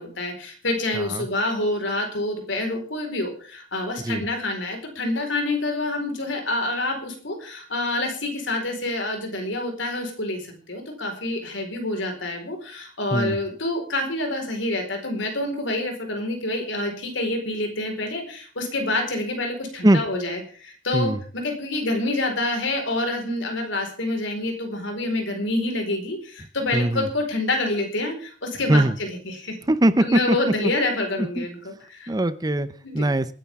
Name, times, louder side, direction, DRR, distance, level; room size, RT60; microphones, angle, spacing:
voice 1, 0.0-29.6 30.0-32.1 32.8-33.0, left 2 dB, 80° left, 3 dB, 4.6 m, -27 dB
voice 2, 0.9-1.3 4.0-4.2 13.1-13.4 19.8-20.0 20.9-21.2 26.7-27.1 28.7-29.0 29.7-30.4 30.6-30.7 31.2-31.5 32.1-32.7 32.9-33.3, right 1 dB, 20° right, 14 dB, 0.7 m, -21 dB
28.0 x 10.0 x 3.6 m, 0.42 s
head